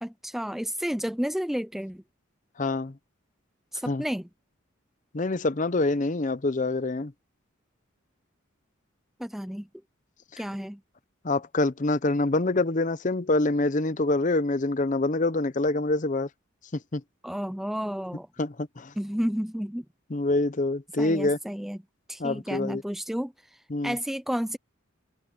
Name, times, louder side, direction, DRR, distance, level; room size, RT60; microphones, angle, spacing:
voice 1, 0.0-2.0 3.7-4.3 9.2-9.7 10.4-10.8 17.2-18.3 19.0-19.8 21.0-21.8 22.1-23.3 23.8-24.6, equal, ahead, 0.3 m, -31 dB
voice 2, 2.6-2.9 3.9-4.0 5.1-7.1 10.3-10.4 11.2-16.3 16.7-17.0 18.4-18.9 20.1-21.4 22.2-22.8 23.7-24.0, left 2 dB, 40° left, 0.7 m, -26 dB
head